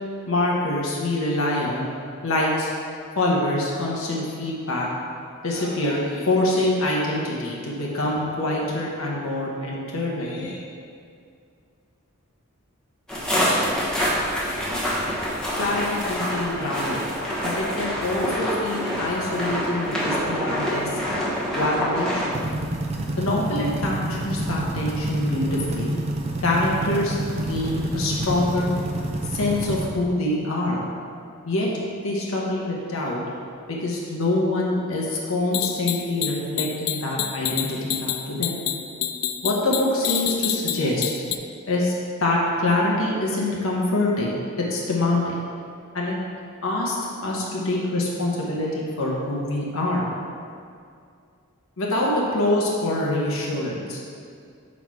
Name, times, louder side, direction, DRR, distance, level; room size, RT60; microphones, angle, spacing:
voice 1, 0.3-1.9 2.2-2.7 3.2-4.9 5.4-10.6 15.6-17.1 17.4-20.9 21.5-22.4 23.2-25.9 26.4-28.7 29.3-30.8 31.5-31.7 32.0-33.2 33.7-38.5 39.4-41.1 41.7-41.9 42.2-44.4 44.7-45.2 45.9-46.1 46.6-50.0 51.8-54.0, left 1 dB, 65° left, -3 dB, 0.9 m, -25 dB
sound 1, 13.1-22.3, equal, 5° left, 1.0 m, -26 dB
sound 2, 22.3-29.9, right 1 dB, 30° right, 0.5 m, -28 dB
sound 3, 35.5-41.4, left 11 dB, 85° left, 0.3 m, -27 dB
5.9 x 4.2 x 4.6 m, 2.3 s
head